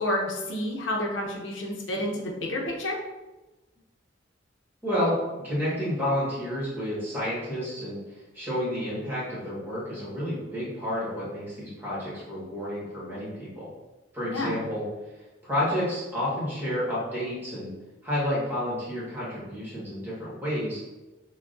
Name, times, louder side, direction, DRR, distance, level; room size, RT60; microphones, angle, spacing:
voice 1, 0.0-3.0 14.3-14.6, left 1 dB, 85° left, -1 dB, 0.7 m, -29 dB
voice 2, 4.8-8.0 8.3-13.7 14.1-14.8 15.4-17.7 18.0-20.8, equal, 10° right, -8 dB, 1.4 m, -30 dB
5.8 x 2.3 x 2.5 m, 1.1 s
head